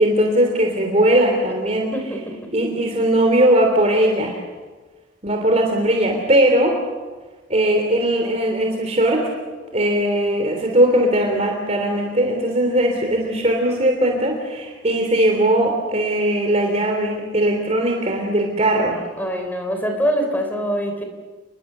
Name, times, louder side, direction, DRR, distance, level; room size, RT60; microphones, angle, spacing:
voice 1, 0.0-1.9 2.5-4.4 5.2-6.8 7.5-9.3 9.7-19.0, right 1 dB, 35° right, 2 dB, 3.2 m, -19 dB
voice 2, 1.9-2.5 19.2-21.0, equal, 10° left, 4 dB, 3.4 m, -24 dB
30.0 x 22.5 x 6.8 m, 1.3 s
head